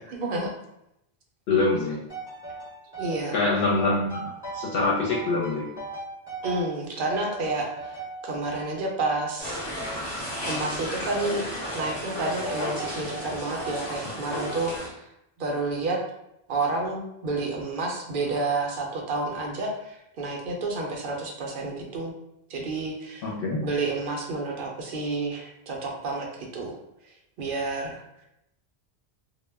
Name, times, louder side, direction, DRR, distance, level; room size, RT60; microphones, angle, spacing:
voice 1, 0.1-0.5 3.0-3.3 6.4-7.7 8.2-9.7 10.4-11.4 11.7-15.0 15.4-16.0 16.5-22.1 22.5-23.3 23.6-26.8 27.4-28.0, right 3 dB, 60° right, 0 dB, 0.7 m, -30 dB
voice 2, 1.5-2.0 3.3-5.7 23.2-23.6, left 3 dB, 65° left, -4 dB, 0.7 m, -25 dB
sound 1, 2.1-3.3 3.8-4.8 5.1-6.8 7.1-8.7 9.1-10.2 10.4-11.4 11.8-12.0 12.4-14.0 14.4-14.8, right 1 dB, 5° right, 0.7 m, -38 dB
sound 2, 9.4-14.9, equal, 35° left, 0.8 m, -34 dB
2.1 x 2.0 x 3.3 m, 0.83 s
omnidirectional pair, 1.1 m